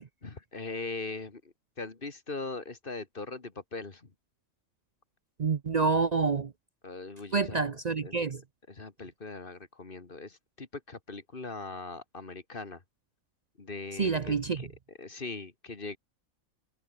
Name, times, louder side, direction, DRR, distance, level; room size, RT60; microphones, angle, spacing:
voice 1, 0.2-4.1 6.8-8.3 8.7-12.8 13.6-14.7 15.0-16.0, left 3 dB, 40° left, 2.1 m, -40 dB
voice 2, 5.4-6.5 7.3-8.4 14.0-14.7, right 4 dB, 45° right, 0.6 m, -28 dB
omnidirectional pair, 1.4 m